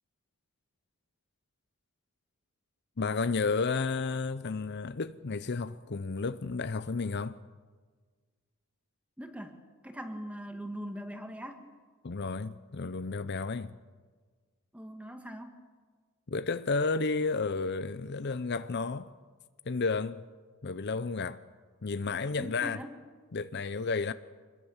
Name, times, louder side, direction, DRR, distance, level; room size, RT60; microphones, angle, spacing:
voice 1, 3.0-7.4 12.0-13.8 16.3-19.1 19.6-20.2 20.6-21.4 21.8-22.8 23.3-24.1, left 4 dB, 50° left, 0.6 m, -32 dB
voice 2, 9.2-11.7 14.7-15.6 22.3-22.9, equal, 5° right, 1.9 m, -41 dB
27.0 x 21.5 x 7.3 m
head